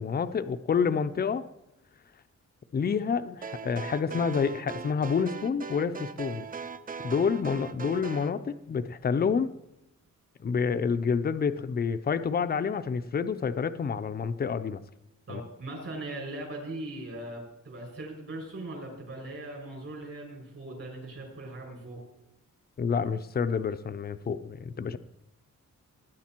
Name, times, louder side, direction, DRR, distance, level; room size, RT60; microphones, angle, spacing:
voice 1, 0.0-1.5 2.7-6.4 7.0-9.5 10.4-14.8 15.3-15.4 22.8-25.0, left 6 dB, 30° left, 11 dB, 0.6 m, -28 dB
sound 1, 3.4-8.3, right 5 dB, 30° right, 0.4 m, -39 dB
voice 2, 15.3-22.0, right 2 dB, 50° right, -1 dB, 6.5 m, -39 dB
19.5 x 10.5 x 4.5 m, 0.91 s
wide cardioid pair, 170°, 30 cm